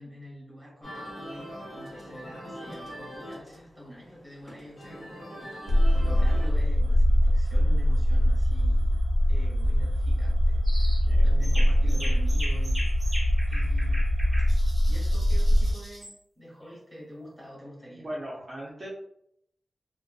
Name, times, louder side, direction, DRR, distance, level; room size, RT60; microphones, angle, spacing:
voice 1, 0.0-9.0 9.3-12.9 13.5-14.5 14.9-18.1, equal, ahead, -6 dB, 1.2 m, -46 dB
sound 1, 0.8-6.5, equal, 25° left, 1.0 m, -42 dB
sound 2, 5.7-15.7, equal, 85° right, 0.6 m, -22 dB
sound 3, 10.6-11.0 11.4-16.1, equal, 15° right, 1.1 m, -40 dB
voice 2, 11.1-11.7 16.7-16.8 18.0-18.9, equal, 35° right, -7 dB, 0.6 m, -40 dB
2.5 x 2.5 x 2.3 m, 0.75 s
wide cardioid pair, 135°, 0 cm